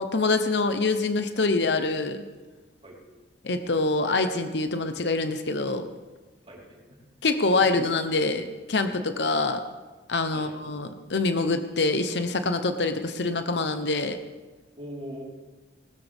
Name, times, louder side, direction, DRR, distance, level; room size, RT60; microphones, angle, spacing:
voice 1, 0.0-2.2 3.4-5.9 7.2-9.6 10.1-14.2, left 3 dB, 70° left, 8 dB, 0.9 m, -25 dB
voice 2, 6.5-6.8 7.6-7.8 10.3-10.5 14.8-15.2, equal, 30° right, -5 dB, 4.3 m, -40 dB
19.5 x 13.0 x 3.6 m, 1.3 s
head